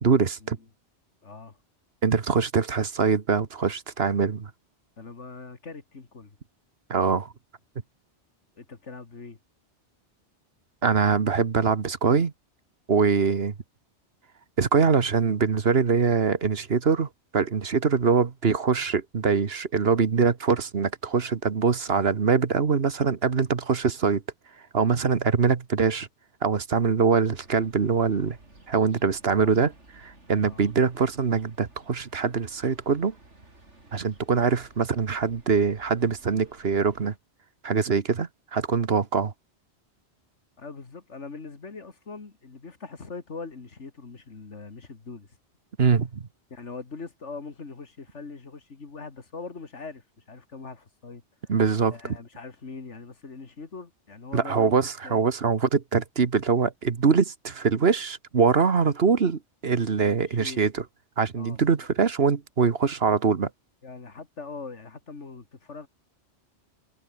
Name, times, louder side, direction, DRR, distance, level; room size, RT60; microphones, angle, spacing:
voice 1, 0.0-0.6 2.0-4.5 6.9-7.3 10.8-12.3 12.9-13.5 14.6-24.2 24.7-26.1 26.4-28.4 28.7-29.7 30.0-33.2 33.9-37.1 37.6-39.3 45.8-46.2 51.5-51.9 54.3-60.8 61.2-63.5, right 5 dB, 60° right, 1.6 m, -23 dB
voice 2, 1.2-1.6 5.0-6.4 8.6-9.4 29.3-29.7 30.4-30.7 40.6-45.3 46.5-51.5 51.9-54.8 55.0-55.2 60.0-60.6 61.4-61.6 63.8-65.9, left 4 dB, 85° left, 2.7 m, -41 dB
sound 1, 27.3-37.2, right 2 dB, 85° right, 5.1 m, -54 dB
omnidirectional pair, 1.2 m